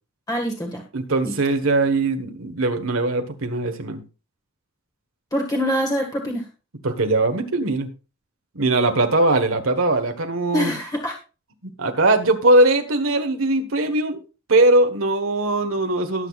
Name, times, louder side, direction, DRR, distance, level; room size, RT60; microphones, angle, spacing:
voice 1, 0.3-0.8 1.2-1.3 5.3-6.5 10.5-11.2, equal, 20° left, 1 dB, 1.7 m, -24 dB
voice 2, 0.9-4.0 6.8-7.9 8.5-10.7 11.8-14.2 14.5-16.3, right 2 dB, 80° right, 5 dB, 1.4 m, -20 dB
18.5 x 7.8 x 2.4 m, 0.32 s
head